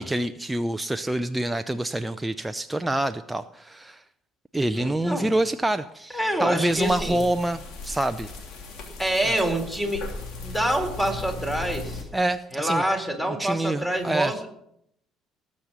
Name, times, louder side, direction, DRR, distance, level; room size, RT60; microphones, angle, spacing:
voice 1, 0.0-4.0 4.5-8.3 12.1-12.8 13.4-14.5, right 1 dB, 10° right, 9 dB, 0.6 m, -26 dB
voice 2, 4.8-5.3 6.1-7.2 9.0-10.0 10.4-12.1 12.5-14.5, right 1 dB, 10° left, 4 dB, 3.8 m, -26 dB
sound 1, 6.7-12.0, left 3 dB, 60° left, 2.8 m, -37 dB
19.0 x 7.5 x 5.4 m, 0.73 s
hypercardioid pair, 55°, 0 cm